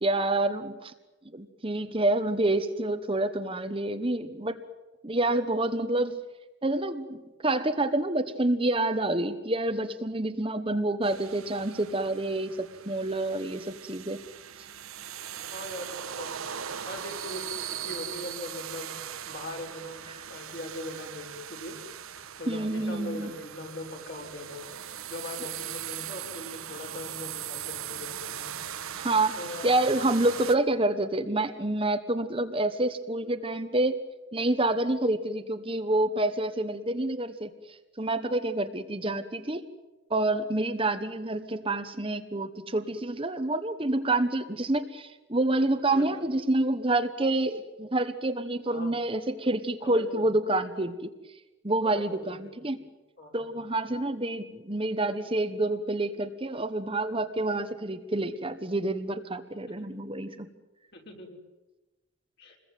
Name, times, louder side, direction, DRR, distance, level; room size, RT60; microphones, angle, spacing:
voice 1, 0.0-0.9 1.3-4.6 5.0-6.2 6.6-14.2 22.5-23.3 29.0-29.4 29.6-33.9 34.3-37.5 38.0-39.6 40.1-51.1 51.6-52.8 53.3-60.5, right 2 dB, 25° right, 8 dB, 1.2 m, -28 dB
sound 1, 11.0-30.6, right 9 dB, 80° right, 1.3 m, -40 dB
voice 2, 15.5-16.3 16.8-18.9 19.2-21.8 22.4-24.6 25.0-28.5 29.3-29.8 45.5-45.6 45.9-46.2 48.7-48.9 49.8-50.2 51.8-52.3 53.2-53.8 59.7-59.8 60.9-61.4 62.4-62.6, left 1 dB, 50° left, 0 dB, 5.7 m, -41 dB
28.0 x 21.5 x 9.3 m, 1.1 s
head